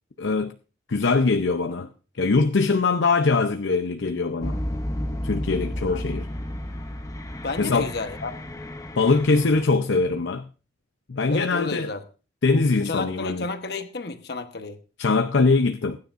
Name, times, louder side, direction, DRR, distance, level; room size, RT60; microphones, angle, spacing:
voice 1, 0.2-0.5 0.9-1.9 2.1-4.6 5.2-6.3 7.6-7.9 9.0-10.5 11.1-11.9 12.4-13.4 15.0-16.0, left 3 dB, 85° left, 0.6 m, -22 dB
sound 1, 4.4-9.6, left 1 dB, 15° left, 0.8 m, -32 dB
voice 2, 5.7-6.1 7.4-8.4 11.3-12.0 12.8-14.8, left 3 dB, 55° left, 1.1 m, -32 dB
21.5 x 9.8 x 2.5 m
head